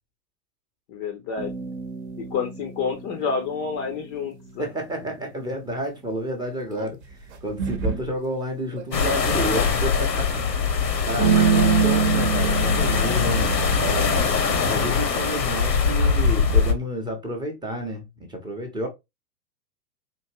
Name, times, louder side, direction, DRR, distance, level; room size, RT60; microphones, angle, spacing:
voice 1, 0.9-1.7 2.2-4.6, left 5 dB, 25° left, 0.6 m, -29 dB
sound 1, 1.4-3.7 6.8-6.9 7.6-8.1 8.8-9.6 11.2-14.2, right 7 dB, 40° right, 0.9 m, -25 dB
voice 2, 4.6-14.2 14.7-18.9, right 1 dB, 10° right, 0.8 m, -31 dB
sound 2, 8.9-16.7, left 5 dB, 80° left, 1.0 m, -22 dB
4.5 x 2.8 x 2.7 m
figure-of-eight pair, 100°, 49 cm